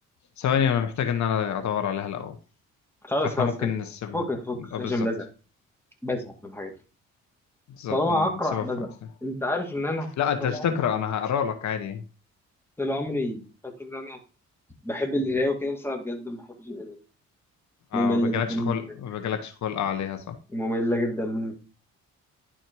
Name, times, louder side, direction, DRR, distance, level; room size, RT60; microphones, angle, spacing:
voice 1, 0.4-2.3 3.4-4.2 4.7-5.1 7.8-8.6 10.2-12.0 17.9-20.4, left 8 dB, 70° left, 7 dB, 1.2 m, -28 dB
voice 2, 3.1-3.7 4.1-5.2 6.0-6.7 7.9-8.9 9.2-10.1 10.4-10.7 12.8-13.4 13.8-14.2 14.8-17.0 17.9-18.8 20.5-21.5, left 1 dB, 10° left, 2 dB, 2.2 m, -28 dB
11.0 x 4.4 x 4.7 m, 0.34 s
cardioid pair, 90°, 30 cm